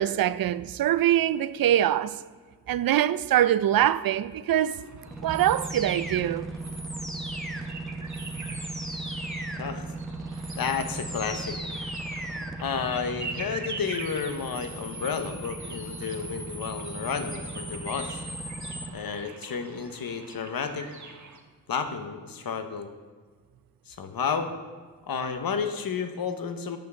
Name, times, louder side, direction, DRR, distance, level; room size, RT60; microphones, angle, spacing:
voice 1, 0.0-2.2 2.7-4.8 5.2-6.5 8.4-8.6, right 11 dB, 70° right, 0.5 m, -24 dB
sound 1, 4.6-21.4, right 3 dB, 55° right, 1.3 m, -44 dB
sound 2, 5.1-18.9, right 2 dB, ahead, 1.1 m, -36 dB
voice 2, 10.6-11.6 12.6-18.2 18.9-20.9 21.7-22.9 23.9-24.5 25.1-26.8, left 6 dB, 75° left, 1.1 m, -31 dB
9.0 x 5.8 x 7.7 m
cardioid pair, 55°, 36 cm